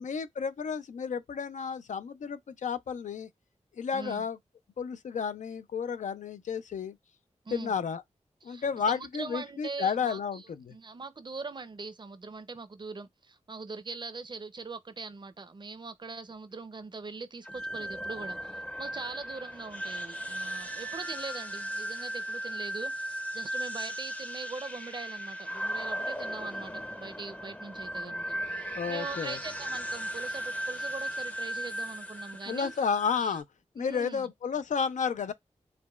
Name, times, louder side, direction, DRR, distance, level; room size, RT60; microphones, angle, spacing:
voice 1, 0.0-3.3 3.7-4.4 4.8-7.0 7.5-8.0 8.4-10.7 28.0-28.2 28.8-29.4 32.5-33.4 33.7-35.3, left 6 dB, 80° left, 0.4 m, -32 dB
voice 2, 3.9-4.2 7.4-7.7 8.4-32.7 33.2-33.3 33.8-34.3, right 4 dB, 40° right, 0.5 m, -42 dB
sound 1, 17.4-33.4, equal, 10° left, 0.5 m, -37 dB
4.9 x 2.1 x 2.2 m
wide cardioid pair, 70°, 12 cm